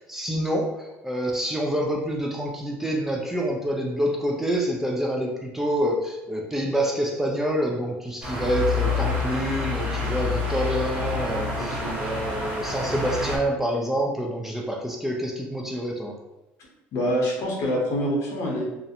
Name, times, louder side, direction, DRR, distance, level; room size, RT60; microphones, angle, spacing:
voice 1, 0.0-16.2, equal, 5° right, -1 dB, 0.3 m, -27 dB
sound 1, 8.2-13.4, left 4 dB, 35° right, 1.0 m, -28 dB
voice 2, 11.6-12.0 16.9-18.7, equal, 60° left, -2 dB, 0.8 m, -26 dB
2.4 x 2.0 x 2.8 m, 0.96 s
cardioid pair, 115°, 6 cm